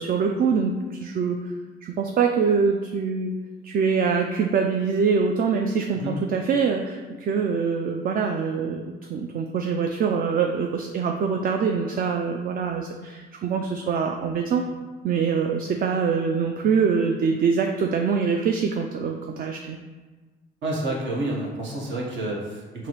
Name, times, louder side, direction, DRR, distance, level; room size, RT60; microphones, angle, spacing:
voice 1, 0.0-1.5 1.8-3.3 3.6-8.8 9.1-14.6 15.0-19.8, right 5 dB, 45° right, 3 dB, 0.4 m, -24 dB
voice 2, 20.6-22.9, right 1 dB, 70° right, -2 dB, 1.1 m, -29 dB
4.7 x 2.9 x 3.0 m, 1.3 s
cardioid pair, 90°, 20 cm